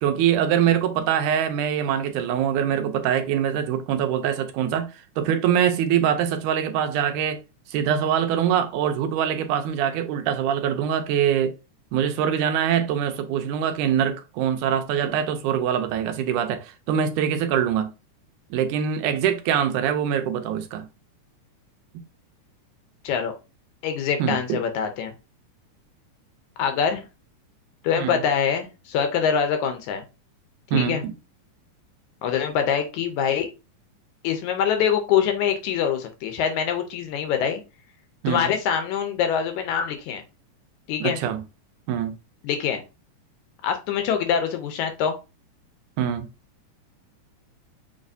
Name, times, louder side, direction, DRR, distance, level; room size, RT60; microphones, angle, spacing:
voice 1, 0.0-4.9 5.2-7.4 7.7-11.5 11.9-17.9 18.5-20.9 24.2-24.6 28.0-28.2 30.7-31.1 38.2-38.5 41.0-41.4 41.9-42.1 46.0-46.3, right 9 dB, 85° right, 2.0 m, -23 dB
voice 2, 23.0-23.3 23.8-25.1 26.6-27.0 27.8-30.0 30.7-31.0 32.2-33.5 34.2-37.6 38.3-40.2 40.9-41.2 42.4-42.8 43.6-45.2, left 8 dB, 80° left, 2.0 m, -24 dB
6.5 x 3.1 x 2.6 m
omnidirectional pair, 3.6 m